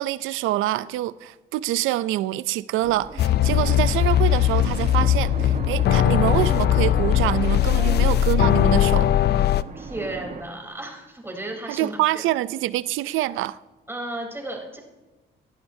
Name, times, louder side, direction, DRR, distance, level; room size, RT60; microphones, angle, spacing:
voice 1, 0.0-9.1 11.7-13.6, right 15 dB, 90° right, 0.4 m, -25 dB
sound 1, 2.8-10.4, right 4 dB, 40° right, 1.3 m, -37 dB
sound 2, 3.2-9.6, left 12 dB, 55° left, 0.4 m, -19 dB
voice 2, 7.7-8.1 9.7-12.2 13.9-14.8, right 1 dB, 10° right, 3.5 m, -34 dB
17.0 x 10.5 x 2.7 m
cardioid pair, 90°, 20 cm